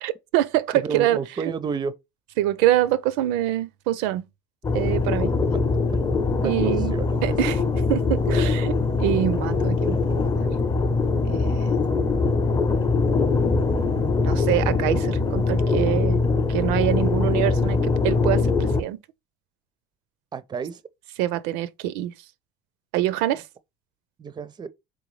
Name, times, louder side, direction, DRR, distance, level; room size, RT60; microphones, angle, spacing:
voice 1, 0.0-1.5 2.4-4.2 4.7-5.3 6.4-6.9 7.2-7.6 7.9-10.5 11.3-11.8 14.2-16.2 16.5-19.0 21.2-22.1 22.9-23.4, right 13 dB, 75° right, 0.5 m, -25 dB
voice 2, 0.7-1.9 5.5-5.6 6.4-7.4 20.3-20.8 24.2-24.7, right 6 dB, 25° right, 0.5 m, -31 dB
sound 1, 4.6-18.8, left 3 dB, 20° left, 0.7 m, -22 dB
3.9 x 3.5 x 3.1 m
supercardioid pair, 90°, 19 cm